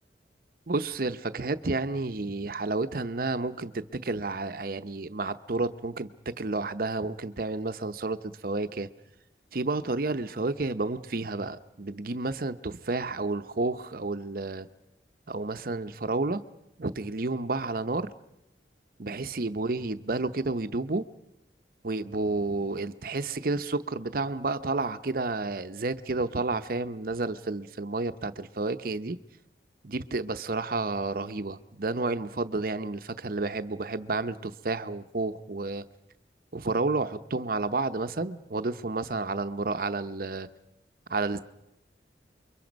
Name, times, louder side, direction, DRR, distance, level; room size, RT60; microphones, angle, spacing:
voice 1, 0.7-8.2 8.4-8.9 9.5-14.7 15.3-16.4 16.8-18.1 19.0-21.1 21.8-29.2 29.8-35.8 36.5-40.5 41.1-41.4, right 3 dB, 55° right, 11 dB, 0.8 m, -31 dB
29.0 x 23.0 x 5.3 m, 0.87 s
head